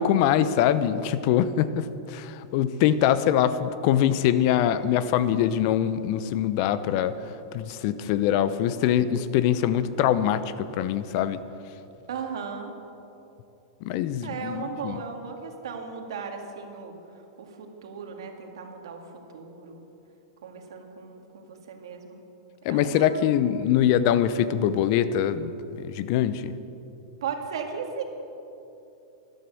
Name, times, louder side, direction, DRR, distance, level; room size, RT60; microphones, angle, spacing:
voice 1, 0.0-7.2 7.5-11.4 13.8-15.0 22.6-26.5, left 10 dB, 55° left, 14 dB, 0.8 m, -23 dB
voice 2, 12.1-12.7 14.2-16.9 17.4-19.0 19.3-19.8 20.4-22.2 22.7-23.3 27.2-28.0, right 6 dB, 80° right, 4 dB, 2.1 m, -36 dB
12.5 x 12.0 x 7.7 m, 2.9 s
hypercardioid pair, 120°, 3 cm